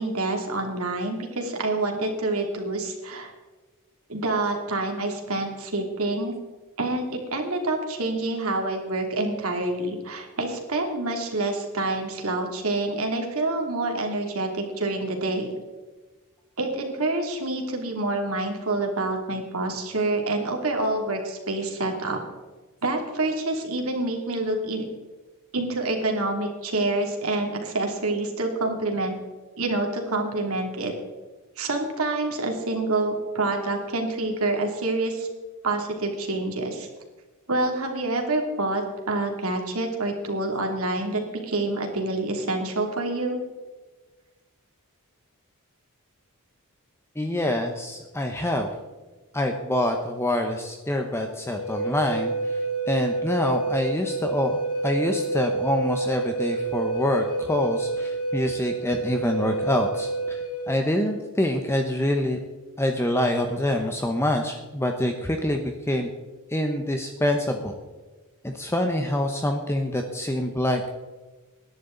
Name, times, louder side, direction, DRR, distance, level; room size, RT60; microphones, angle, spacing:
voice 1, 0.0-3.3 4.1-6.3 6.8-15.5 16.6-22.2 22.8-24.8 25.5-29.1 29.6-30.9 31.6-35.3 35.6-36.9 37.5-43.4, right 2 dB, 70° right, 2 dB, 2.8 m, -27 dB
voice 2, 47.2-48.7 49.3-60.4 60.7-62.4 62.8-66.1 66.5-67.7 68.4-70.9, left 1 dB, 10° left, 4 dB, 0.9 m, -26 dB
Wind instrument woodwind instrument, 51.5-60.8, right 3 dB, 70° left, 2.1 m, -29 dB
20.5 x 11.0 x 3.9 m, 1.3 s
head